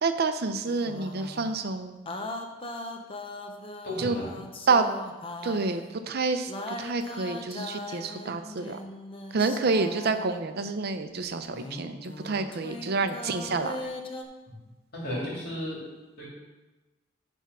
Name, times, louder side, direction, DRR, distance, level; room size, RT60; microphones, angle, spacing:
voice 1, 0.0-2.0 4.0-4.2 4.7-4.9 5.4-8.8 9.3-13.8, right 4 dB, 55° right, 9 dB, 0.6 m, -28 dB
sound 1, 0.6-1.6 2.1-6.0 6.5-10.4 11.4-14.2, left 2 dB, 30° left, 0.7 m, -39 dB
voice 2, 3.8-4.4 14.5-14.6 14.9-15.8 16.2-16.3, left 1 dB, 55° left, -4 dB, 2.4 m, -34 dB
10.0 x 3.6 x 6.1 m, 1.1 s
head